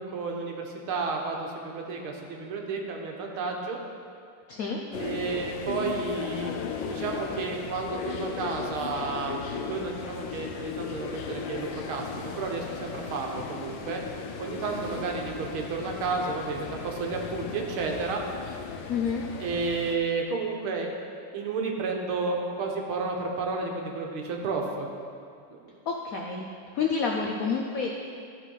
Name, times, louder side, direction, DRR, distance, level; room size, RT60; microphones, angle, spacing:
voice 1, 0.0-3.8 5.0-6.5 6.9-9.4 9.7-14.0 14.4-18.2 19.4-20.9 21.3-24.9 25.5-25.7, right 4 dB, 75° right, 1 dB, 1.9 m, -31 dB
voice 2, 4.5-4.8 18.9-19.3 25.9-26.5 26.7-27.9, left 5 dB, 85° left, 0 dB, 0.7 m, -28 dB
sound 1, 4.9-20.0, left 5 dB, 70° left, 1.3 m, -36 dB
13.5 x 4.6 x 5.4 m, 2.4 s
omnidirectional pair, 2.4 m